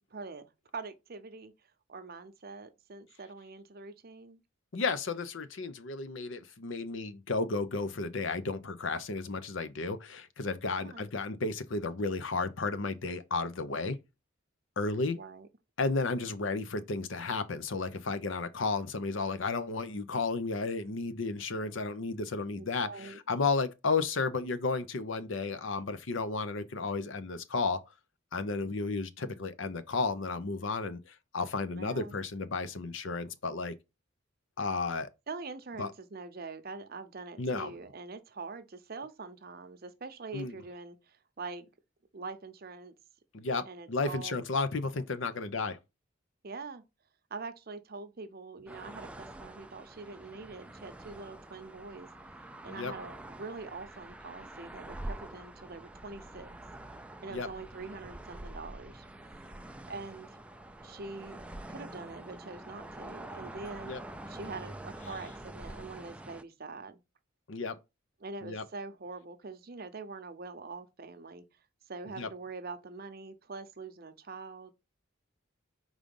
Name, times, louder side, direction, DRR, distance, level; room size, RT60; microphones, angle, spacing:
voice 1, 0.1-1.5 1.9-4.4 10.8-11.1 15.1-15.5 22.6-23.2 31.7-32.1 35.3-41.7 42.1-42.9 43.7-44.4 46.4-46.8 47.3-52.4 52.6-56.5 57.2-59.0 59.9-60.4 60.8-64.0 64.3-67.0 68.2-71.4 71.9-74.7, right 3 dB, 50° right, 0.7 m, -44 dB
voice 2, 4.7-14.0 14.8-15.2 15.8-27.8 28.3-33.7 34.6-35.1 35.8-35.9 37.4-37.7 40.3-40.5 43.3-45.8 52.7-52.9 57.3-57.5 63.9-64.0 67.5-67.8 68.4-68.6 72.2-72.3, left 3 dB, 70° left, 0.7 m, -33 dB
sound 1, 48.7-66.4, right 1 dB, 5° right, 0.3 m, -46 dB
4.8 x 3.8 x 5.3 m
head